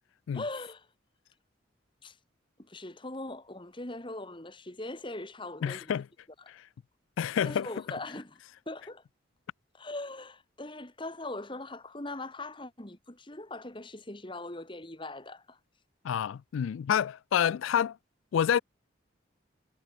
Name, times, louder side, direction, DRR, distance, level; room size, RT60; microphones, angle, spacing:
voice 1, 0.3-0.9 2.0-2.2 2.6-6.0 6.4-6.5 7.4-8.4 8.7-9.0 9.7-15.6, left 2 dB, 25° left, 1.8 m, -41 dB
voice 2, 5.6-6.1 6.5-6.6 7.2-7.7 16.0-18.0 18.3-18.6, left 8 dB, 75° left, 0.3 m, -28 dB
head